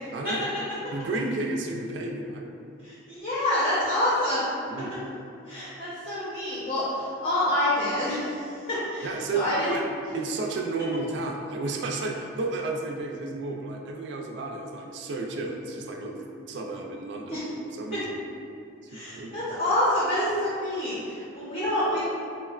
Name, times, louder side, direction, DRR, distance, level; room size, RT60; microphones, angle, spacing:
voice 1, 0.1-0.4 0.9-2.4 4.7-5.0 9.0-9.8 10.1-17.4 17.7-18.2 18.9-19.4, right 3 dB, 60° right, 1 dB, 0.3 m, -32 dB
voice 2, 2.8-4.4 5.5-9.8 17.3-17.4 18.9-22.0, left 1 dB, 40° left, -10 dB, 0.7 m, -27 dB
4.2 x 2.1 x 2.3 m, 2.6 s
head